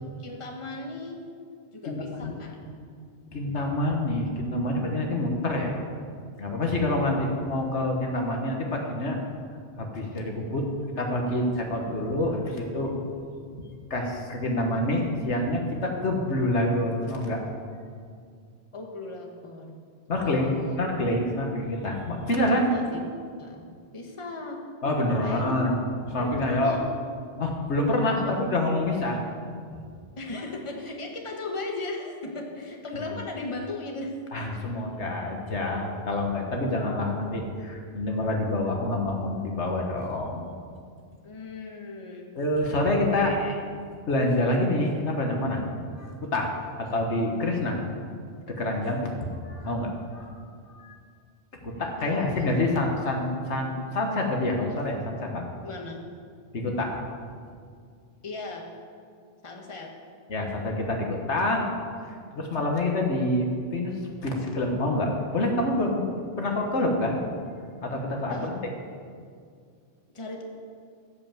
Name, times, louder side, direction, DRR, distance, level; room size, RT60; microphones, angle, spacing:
voice 1, 0.2-1.2 1.7-2.6 18.7-19.8 20.2-20.8 22.5-23.0 23.4-23.6 23.9-24.6 25.2-25.5 26.2-27.0 28.2-28.4 30.2-34.1 41.2-42.3 42.8-43.6 52.0-52.5 55.6-56.0 58.2-58.7 59.4-59.9 68.3-68.5 70.1-70.4, left 2 dB, 25° left, 1 dB, 1.3 m, -37 dB
voice 2, 1.8-2.3 3.3-5.8 6.4-9.2 9.8-10.7 11.0-12.9 13.6-17.4 20.1-22.7 24.8-25.7 26.1-26.7 27.4-29.2 33.1-33.2 34.3-40.5 42.3-43.3 44.1-46.5 46.8-47.8 48.5-50.3 50.7-51.0 51.6-55.5 56.5-57.0 60.3-61.7 62.3-66.1 66.4-67.2 67.8-68.6, left 1 dB, 75° left, 1 dB, 1.7 m, -27 dB
15.5 x 5.5 x 7.6 m, 2.2 s
omnidirectional pair, 1.2 m